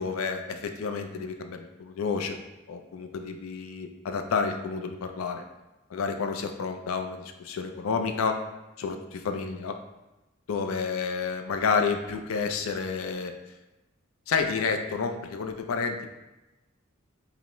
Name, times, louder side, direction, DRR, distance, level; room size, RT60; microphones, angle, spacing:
voice 1, 0.0-2.4 2.7-5.4 5.9-8.4 8.8-9.8 10.5-13.3 14.3-16.1, left 5 dB, 85° left, 6 dB, 0.4 m, -30 dB
5.5 x 2.0 x 3.0 m, 1.0 s
head